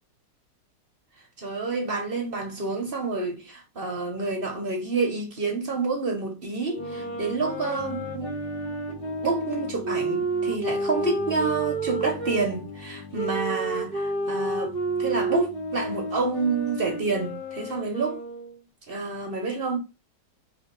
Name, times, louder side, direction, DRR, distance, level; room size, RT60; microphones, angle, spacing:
voice 1, 1.4-8.3 9.2-18.2 18.9-19.8, right 4 dB, 50° right, 0.7 m, -28 dB
sound 1, 6.6-12.4 13.1-18.6, right 2 dB, 25° left, 2.0 m, -30 dB
sound 2, 6.8-18.0, left 2 dB, 90° left, 1.5 m, -44 dB
4.0 x 2.9 x 3.0 m
omnidirectional pair, 1.9 m